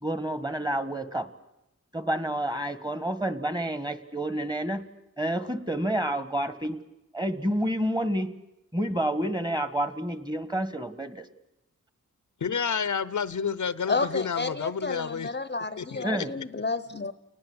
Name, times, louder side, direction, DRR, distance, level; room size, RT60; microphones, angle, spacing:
voice 1, 0.0-1.3 1.9-4.9 5.2-6.8 7.1-8.3 8.7-11.3 16.0-16.3, right 1 dB, 15° right, 12 dB, 1.5 m, -29 dB
voice 2, 12.4-15.3 15.8-16.3, left 6 dB, 70° left, 16 dB, 0.8 m, -30 dB
voice 3, 13.9-17.1, left 3 dB, 35° left, 14 dB, 0.8 m, -31 dB
29.0 x 19.5 x 8.0 m, 0.94 s
wide cardioid pair, 95°, 31 cm